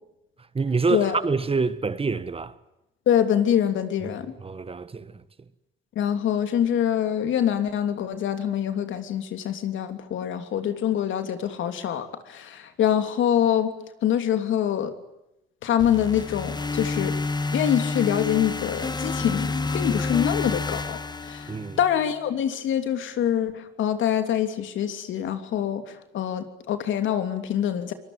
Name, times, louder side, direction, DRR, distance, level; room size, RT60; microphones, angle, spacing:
voice 1, 0.5-2.6 4.0-5.2 21.5-21.8, right 4 dB, 30° right, 1.5 m, -27 dB
voice 2, 3.1-4.3 5.9-13.7 14.0-14.9 15.6-17.2 17.5-27.9, left 10 dB, 75° left, 3.1 m, -25 dB
sound 1, 15.8-22.0, left 3 dB, 20° left, 1.7 m, -29 dB
24.0 x 20.0 x 9.6 m
cardioid pair, 90°, 20 cm